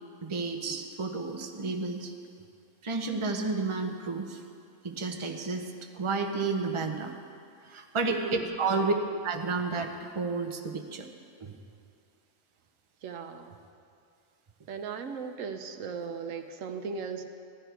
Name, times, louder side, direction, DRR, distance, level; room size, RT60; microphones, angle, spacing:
voice 1, 0.2-2.1 2.8-4.4 4.8-7.1 7.7-8.9 9.2-11.1 11.4-11.5, right 4 dB, 25° right, 3 dB, 0.8 m, -31 dB
voice 2, 8.1-8.6 13.0-13.6 14.7-17.2, right 5 dB, 75° right, 6 dB, 1.1 m, -37 dB
15.5 x 12.0 x 4.7 m, 2.4 s
omnidirectional pair, 1.4 m